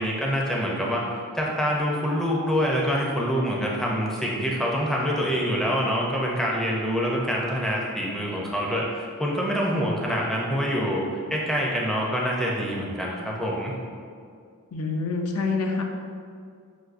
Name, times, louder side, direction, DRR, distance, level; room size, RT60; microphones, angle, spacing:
voice 1, 0.0-13.8, equal, ahead, -3 dB, 0.4 m, -26 dB
voice 2, 14.7-15.8, left 4 dB, 80° left, 3 dB, 0.5 m, -26 dB
6.0 x 2.6 x 2.5 m, 2.2 s
head